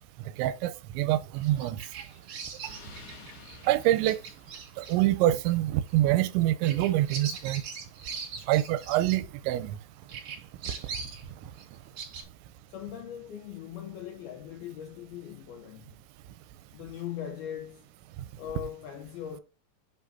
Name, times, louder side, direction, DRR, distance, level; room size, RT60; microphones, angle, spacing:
voice 1, 0.4-1.8 2.6-2.7 3.7-4.2 4.8-7.6 8.5-9.8, right 14 dB, 85° right, 2.9 m, -25 dB
Bird vocalization bird call bird song, 1.3-9.8 10.1-12.2, right 5 dB, 55° right, 3.0 m, -42 dB
Explosion, 1.4-5.3, left 4 dB, 60° left, 1.5 m, -52 dB
voice 2, 12.7-16.0 16.7-17.9 18.4-19.4, left 10 dB, 80° left, 2.2 m, -40 dB
8.0 x 5.9 x 2.7 m
omnidirectional pair, 5.3 m